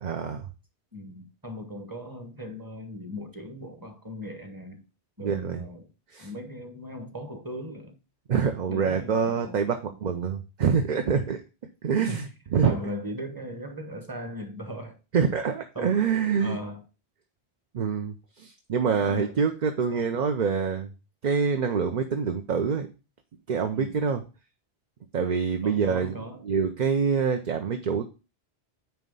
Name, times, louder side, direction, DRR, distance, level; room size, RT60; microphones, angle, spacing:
voice 1, 0.0-0.5 5.2-5.6 6.1-6.3 8.3-11.4 11.8-12.7 15.1-16.6 17.7-20.9 21.2-22.9 23.5-24.2 25.1-28.0, right 6 dB, 50° right, 0.7 m, -26 dB
voice 2, 0.9-4.8 5.2-5.9 6.2-7.9 8.7-9.6 12.1-12.2 12.6-15.0 15.7-16.0 16.4-16.8 19.0-19.3 19.9-20.1 23.7-23.9 25.6-26.4, equal, 20° right, 1.2 m, -38 dB
9.3 x 3.1 x 5.3 m
omnidirectional pair, 1.1 m